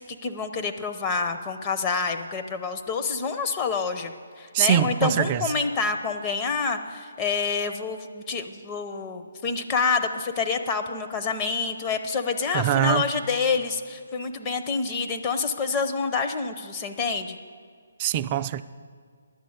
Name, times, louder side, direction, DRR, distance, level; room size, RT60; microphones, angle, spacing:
voice 1, 0.1-17.4, left 5 dB, 25° left, 6 dB, 0.7 m, -27 dB
voice 2, 4.5-5.5 12.5-13.1 18.0-18.6, right 11 dB, 30° right, 12 dB, 0.4 m, -23 dB
11.0 x 8.0 x 7.9 m, 2.1 s
figure-of-eight pair, 150°, 0 cm